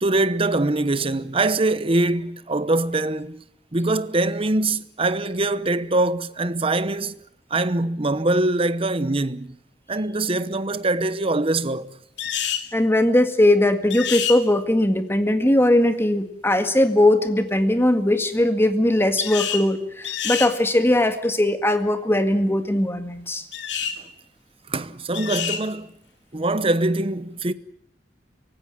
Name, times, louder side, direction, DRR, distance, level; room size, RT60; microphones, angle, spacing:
voice 1, 0.0-3.4 3.7-7.2 7.5-9.6 9.9-11.9 24.0-24.1 24.7-26.0 26.3-27.5, right 2 dB, 30° right, 1.0 m, -23 dB
sound 1, 12.2-12.7 13.9-14.4 19.2-19.7 20.0-20.5 23.5-24.0 25.1-25.6, left 9 dB, 75° left, 2.8 m, -27 dB
voice 2, 12.7-23.4, left 1 dB, 15° left, 1.9 m, -19 dB
24.5 x 18.0 x 8.9 m
head